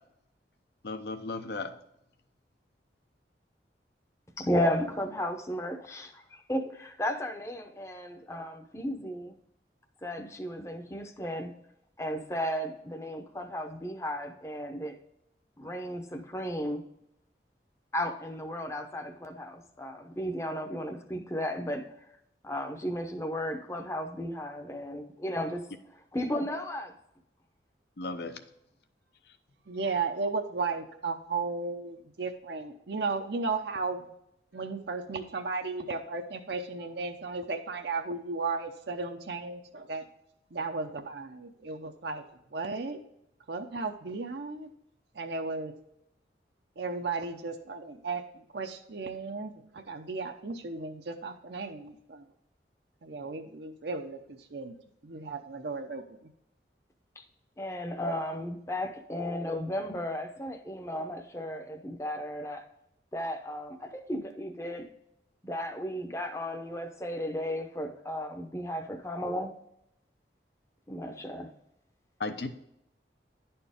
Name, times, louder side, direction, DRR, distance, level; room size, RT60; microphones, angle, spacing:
voice 1, 0.8-1.7 28.0-28.4 72.2-72.5, left 3 dB, 65° left, 9 dB, 0.7 m, -35 dB
voice 2, 4.4-6.1 6.5-9.3 10.0-11.5 12.0-14.9 15.6-16.8 17.9-21.8 22.4-25.6 26.1-26.9 57.6-62.6 63.1-63.8 64.1-64.8 65.4-69.5 70.9-71.5, equal, 15° left, 6 dB, 0.7 m, -34 dB
voice 3, 29.7-34.0 34.5-40.1 40.5-42.2 42.5-43.0 43.5-44.7 45.1-45.7 46.8-52.3 53.0-54.8 55.0-56.3, right 4 dB, 70° right, 4 dB, 0.7 m, -35 dB
11.0 x 4.4 x 3.5 m, 0.77 s
head